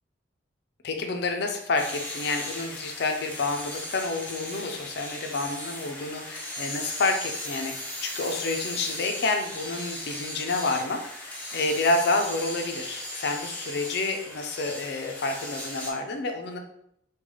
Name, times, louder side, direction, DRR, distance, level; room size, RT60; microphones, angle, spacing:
voice 1, 0.8-16.6, left 3 dB, 60° left, 4 dB, 0.4 m, -29 dB
sound 1, 1.8-15.9, left 1 dB, 10° left, 0.5 m, -37 dB
3.7 x 2.3 x 3.1 m, 0.72 s
head